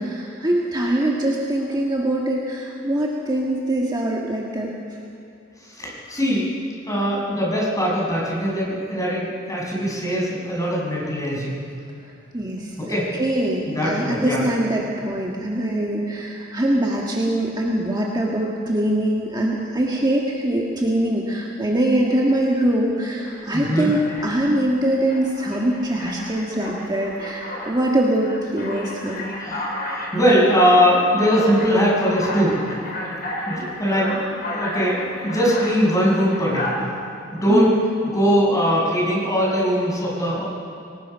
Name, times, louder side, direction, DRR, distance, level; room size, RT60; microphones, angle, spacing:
voice 1, 0.0-4.8 12.3-29.3 37.5-37.8, right 1 dB, 20° right, -3 dB, 1.7 m, -23 dB
voice 2, 5.8-6.4 6.9-11.6 12.8-13.1 13.7-14.4 23.5-23.9 29.4-32.6 33.5-36.7 37.3-37.7 38.1-40.4, equal, 20° left, -5 dB, 6.4 m, -21 dB
Alarm, 23.3-23.4 23.9-24.6 25.1-27.8 28.2-35.8 36.3-36.7, left 1 dB, 50° left, 4.6 m, -32 dB
24.5 x 19.0 x 5.7 m, 2.5 s
head